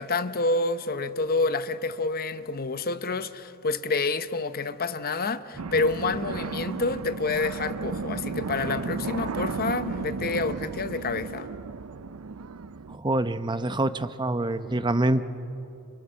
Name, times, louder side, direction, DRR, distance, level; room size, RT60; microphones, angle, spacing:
voice 1, 0.0-11.5, left 3 dB, 45° left, 0.8 m, -28 dB
sound 1, 5.6-13.0, right 4 dB, 90° right, 0.6 m, -34 dB
voice 2, 12.9-15.2, right 2 dB, 20° right, 0.8 m, -26 dB
29.0 x 28.5 x 6.4 m
head